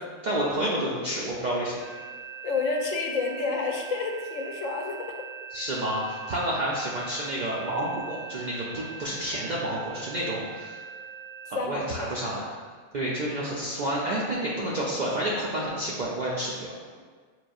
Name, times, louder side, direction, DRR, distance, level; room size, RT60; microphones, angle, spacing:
voice 1, 0.2-1.8 5.5-10.8 11.5-12.4 12.9-16.7, right 1 dB, 65° right, -5 dB, 0.4 m, -29 dB
sound 1, 1.8-11.5, right 6 dB, 25° left, 0.7 m, -42 dB
voice 2, 2.4-5.1 11.5-12.2 17.0-17.1, left 4 dB, 80° left, 1 dB, 0.9 m, -29 dB
5.9 x 2.6 x 2.3 m, 1.6 s
omnidirectional pair, 1.3 m